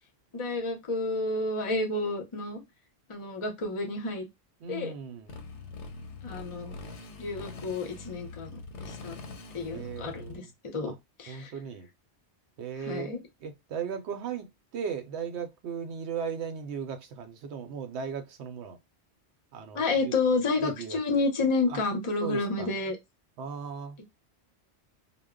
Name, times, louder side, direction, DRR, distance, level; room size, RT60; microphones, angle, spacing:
voice 1, 0.3-2.6 3.1-4.3 4.7-4.9 6.2-6.7 7.2-9.2 9.5-10.9 11.2-11.5 12.8-13.2 19.7-23.0, left 3 dB, 35° left, 0.6 m, -30 dB
voice 2, 4.6-5.4 9.7-10.5 10.8-11.0 11.3-11.9 12.6-18.8 19.5-20.1 20.6-21.0 21.7-21.8 22.2-22.7 23.4-24.0, right 7 dB, 75° right, 0.9 m, -37 dB
Motorcycle, 5.3-10.4, left 3 dB, 90° left, 0.9 m, -43 dB
2.2 x 2.0 x 3.5 m
omnidirectional pair, 1.2 m